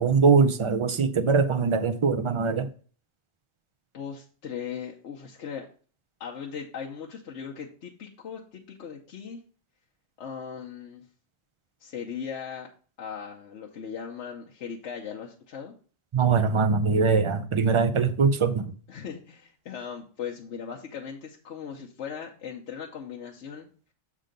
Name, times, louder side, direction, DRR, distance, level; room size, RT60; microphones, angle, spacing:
voice 1, 0.0-2.7 16.1-18.7, right 5 dB, 50° right, 0.3 m, -22 dB
voice 2, 3.9-5.7 6.2-9.4 10.2-11.0 11.8-12.7 13.0-15.7 18.9-23.7, left 7 dB, 85° left, 1.1 m, -38 dB
7.6 x 3.7 x 5.1 m
omnidirectional pair, 1.2 m